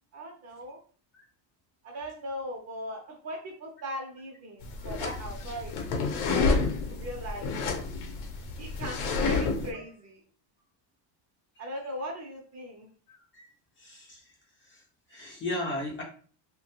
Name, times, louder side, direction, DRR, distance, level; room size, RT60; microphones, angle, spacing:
voice 1, 0.1-0.8 1.8-5.8 6.3-6.6 6.9-7.5 8.6-10.2 11.6-12.9, equal, 35° right, 1 dB, 0.6 m, -39 dB
sound 1, 4.6-9.7, left 4 dB, 85° left, 0.8 m, -29 dB
voice 2, 13.1-13.5 13.8-14.2 15.1-16.0, left 1 dB, 25° left, -2 dB, 0.5 m, -35 dB
3.0 x 2.2 x 2.8 m, 0.42 s
cardioid pair, 155°, 49 cm